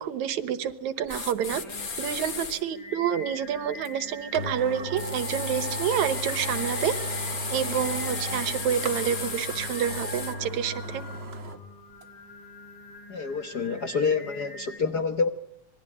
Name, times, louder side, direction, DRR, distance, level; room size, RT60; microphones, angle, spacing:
voice 1, 0.0-1.6 2.0-7.0 7.5-11.0, right 9 dB, 70° right, 14 dB, 2.6 m, -28 dB
sound 1, 1.1-2.6 5.0-10.3, left 5 dB, 35° left, 1.8 m, -34 dB
Singing, 1.5-14.8, left 2 dB, 85° left, 5.5 m, -45 dB
sound 2, 3.8-3.9 4.3-11.6 12.0-12.1, right 1 dB, 50° right, 0.7 m, -35 dB
voice 2, 13.1-15.3, left 5 dB, 65° left, 9 dB, 1.0 m, -27 dB
26.5 x 21.5 x 10.0 m, 0.76 s
omnidirectional pair, 3.5 m